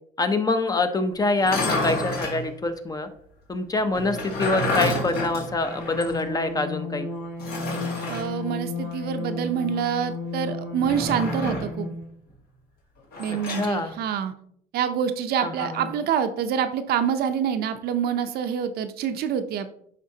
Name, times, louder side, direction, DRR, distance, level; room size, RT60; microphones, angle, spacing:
voice 1, 0.2-3.1 3.5-7.1 13.3-13.9 15.4-15.9, left 3 dB, 20° left, 8 dB, 0.6 m, -25 dB
sound 1, 1.3-2.4 3.9-6.2 6.5-6.6 7.4-8.3 10.8-11.8 13.1-13.7, left 2 dB, 70° left, 2.0 m, -29 dB
sound 2, 5.3-12.1, left 3 dB, 85° left, 2.1 m, -33 dB
voice 2, 8.1-11.9 13.2-14.3 14.7-19.7, right 8 dB, 70° right, 9 dB, 0.6 m, -26 dB
11.0 x 3.7 x 2.8 m, 0.67 s
cardioid pair, 110°, 17 cm